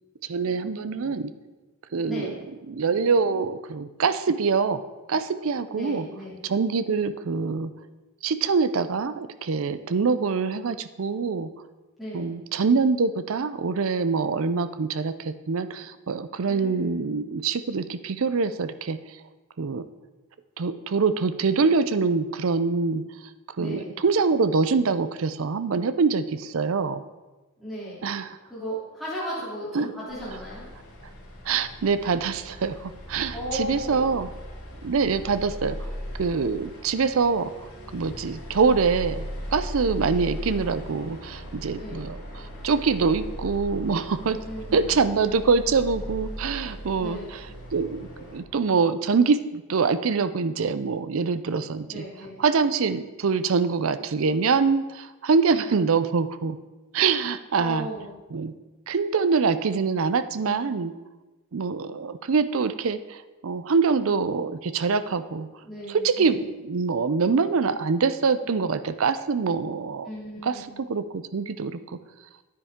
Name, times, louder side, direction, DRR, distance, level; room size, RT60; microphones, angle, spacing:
voice 1, 0.3-1.3 1.9-2.3 2.7-4.8 5.1-6.1 6.4-7.7 8.2-11.5 12.1-19.0 19.6-19.8 20.6-23.0 23.6-27.0 28.0-28.3 29.7-29.9 31.5-34.3 34.8-35.9 36.2-39.3 39.5-44.4 44.7-47.4 47.7-52.0 52.4-56.6 56.9-57.9 58.3-58.5 58.9-60.9 61.5-65.5 65.9-70.1 70.4-70.6 70.9-71.8, right 5 dB, 65° right, 13 dB, 0.5 m, -24 dB
voice 2, 2.1-2.4 5.7-6.4 12.0-12.4 16.5-17.0 23.6-24.0 27.6-28.1 28.5-30.6 33.3-34.1 40.1-40.5 41.8-42.1 44.4-45.0 47.0-47.3 51.9-52.4 57.6-58.1 65.6-66.5 70.0-70.8, equal, ahead, -9 dB, 3.0 m, -36 dB
sound 1, 30.1-48.4, equal, 80° left, 3.5 m, -38 dB
10.0 x 9.6 x 3.6 m, 1.2 s
head